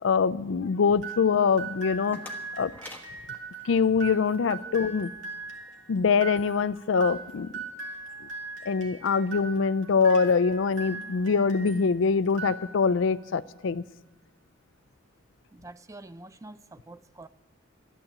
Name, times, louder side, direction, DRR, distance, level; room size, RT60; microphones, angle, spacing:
voice 1, 0.0-2.2 2.6-2.7 3.6-5.1 5.9-7.5 8.7-13.8, left 5 dB, 70° left, 0.4 m, -24 dB
sound 1, 1.0-11.9 12.3-13.1, right 4 dB, 70° right, 2.3 m, -40 dB
sound 2, 1.7-4.5, left 2 dB, 10° left, 1.3 m, -48 dB
voice 2, 15.5-17.3, right 2 dB, 15° right, 0.4 m, -46 dB
13.0 x 11.5 x 7.4 m
head